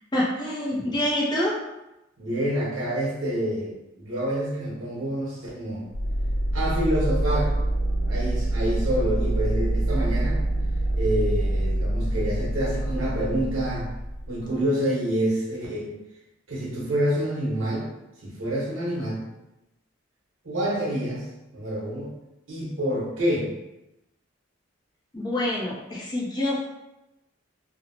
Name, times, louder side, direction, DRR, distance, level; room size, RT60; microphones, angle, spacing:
voice 1, 0.1-1.5 25.1-26.6, left 1 dB, 20° left, -5 dB, 0.5 m, -26 dB
voice 2, 2.2-5.9 6.5-7.5 8.1-10.4 10.9-13.9 14.3-15.9 16.5-17.9 18.2-19.3 20.4-21.3 21.5-22.1 22.5-23.5, right 1 dB, 85° right, -5 dB, 1.0 m, -27 dB
sound 1, 5.9-14.6, right 1 dB, 85° left, 0.5 m, -25 dB
2.9 x 2.0 x 2.7 m, 0.94 s
head